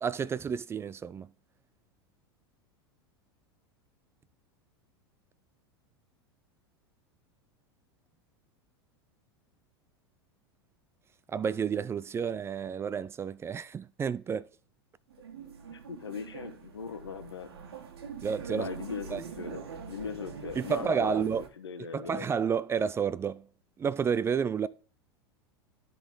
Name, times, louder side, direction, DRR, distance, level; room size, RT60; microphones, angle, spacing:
voice 1, 0.0-1.3 11.3-14.5 18.2-18.7 19.1-19.2 20.6-21.4 21.9-23.4 23.8-24.7, right 7 dB, 20° right, 0.3 m, -30 dB
sound 1, 15.1-21.5, right 6 dB, 75° right, 1.5 m, -44 dB
voice 2, 15.7-17.5 18.5-22.3, left 6 dB, 85° left, 1.0 m, -39 dB
12.0 x 4.1 x 3.6 m
hypercardioid pair, 90°, 13 cm